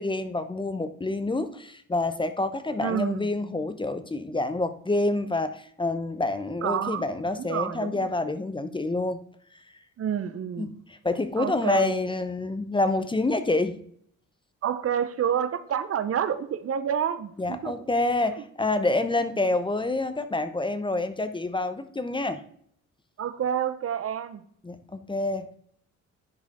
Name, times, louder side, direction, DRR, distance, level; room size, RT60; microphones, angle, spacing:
voice 1, 0.0-9.2 10.6-10.7 11.0-13.8 17.4-22.4 24.6-25.6, left 2 dB, 15° left, 11 dB, 0.7 m, -27 dB
voice 2, 2.8-3.3 6.6-8.1 10.0-10.7 11.4-12.0 14.6-17.7 18.2-18.3 23.2-24.4, right 8 dB, 50° right, 12 dB, 0.7 m, -29 dB
10.5 x 4.9 x 3.6 m, 0.62 s
cardioid pair, 90°, 30 cm